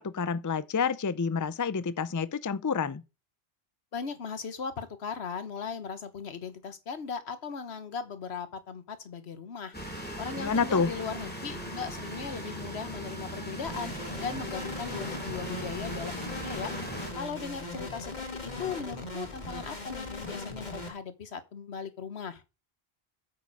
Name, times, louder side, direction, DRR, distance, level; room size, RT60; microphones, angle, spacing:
voice 1, 0.0-3.0 10.3-10.9, left 5 dB, 25° left, 0.4 m, -28 dB
voice 2, 3.9-9.8 10.2-13.9 14.2-16.7 17.1-22.4, left 6 dB, 80° left, 1.4 m, -38 dB
sound 1, 9.7-17.1, right 1 dB, 10° left, 2.5 m, -39 dB
sound 2, 13.7-20.9, left 2 dB, 45° left, 2.1 m, -39 dB
8.5 x 7.3 x 4.8 m
omnidirectional pair, 1.1 m